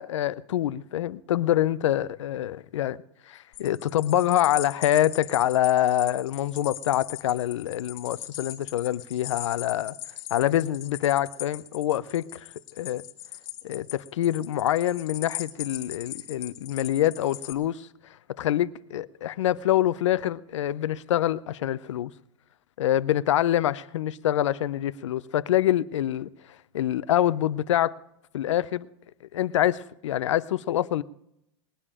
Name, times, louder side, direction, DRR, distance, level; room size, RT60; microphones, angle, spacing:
voice 1, 0.0-3.0 3.3-10.0 10.3-12.5 12.8-13.0 13.6-17.9 18.4-22.1 22.8-26.3 26.7-28.0 28.3-28.9 29.3-31.0, left 12 dB, 85° left, 0.6 m, -25 dB
sound 1, 3.5-17.5, left 13 dB, 40° left, 1.4 m, -40 dB
20.5 x 9.0 x 4.9 m
supercardioid pair, 155°, 15 cm